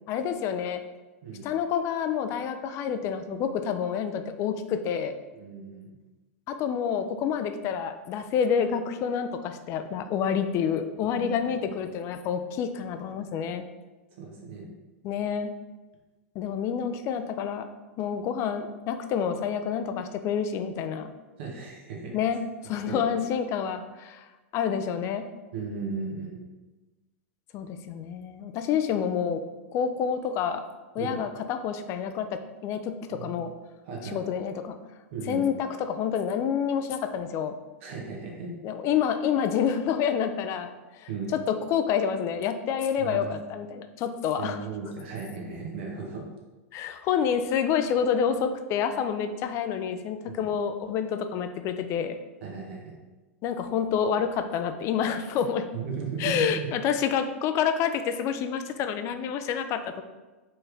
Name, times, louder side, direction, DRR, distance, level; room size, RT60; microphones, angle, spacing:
voice 1, 0.1-0.8 1.4-5.1 6.5-13.6 15.0-15.5 16.4-17.7 18.0-21.1 22.1-24.3 24.5-25.3 27.5-29.4 29.7-30.6 30.9-33.5 34.0-34.8 35.3-37.6 38.6-40.7 41.0-44.6 46.7-52.2 53.4-55.7 56.2-60.0, left 7 dB, 40° left, 9 dB, 0.4 m, -28 dB
voice 2, 5.3-5.9 11.1-11.8 14.2-14.7 21.4-22.1 22.6-23.0 25.5-26.4 31.0-31.1 33.1-33.4 33.9-34.2 35.1-35.5 37.8-38.5 41.1-41.3 43.0-43.4 44.4-46.3 50.3-50.5 52.4-52.9 55.7-56.7, right 5 dB, 60° right, 0 dB, 1.2 m, -36 dB
4.4 x 3.2 x 3.4 m, 1.2 s
hypercardioid pair, 115°, 7 cm